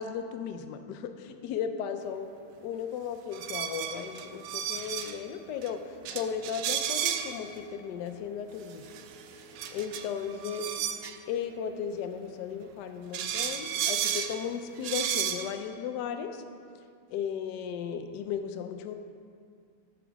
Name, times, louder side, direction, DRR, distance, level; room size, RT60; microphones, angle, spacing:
voice 1, 0.0-2.3 2.6-8.9 9.7-10.7 11.3-16.4 17.1-18.9, left 7 dB, 70° left, 7 dB, 1.0 m, -35 dB
sound 1, 3.3-5.2 5.6-5.7 6.0-7.4 8.7-11.1 12.6-12.7 13.1-14.4 14.8-15.5, right 9 dB, 75° right, 1.0 m, -32 dB
sound 2, 6.1-11.5, equal, 30° left, 1.3 m, -54 dB
10.0 x 5.1 x 5.8 m, 2.2 s
omnidirectional pair, 2.4 m